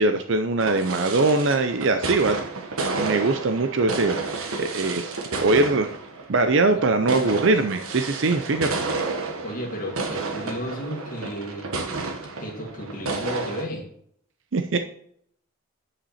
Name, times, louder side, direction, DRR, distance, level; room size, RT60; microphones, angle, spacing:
voice 1, 0.0-2.4 2.8-5.9 6.3-8.9 14.5-14.8, right 3 dB, 60° right, 8 dB, 0.6 m, -22 dB
sound 1, 0.6-13.6, right 3 dB, 80° right, 1.4 m, -31 dB
voice 2, 6.7-7.5 9.4-11.7 12.4-13.8, equal, 40° left, 1 dB, 2.0 m, -34 dB
9.8 x 5.9 x 4.3 m, 0.66 s
head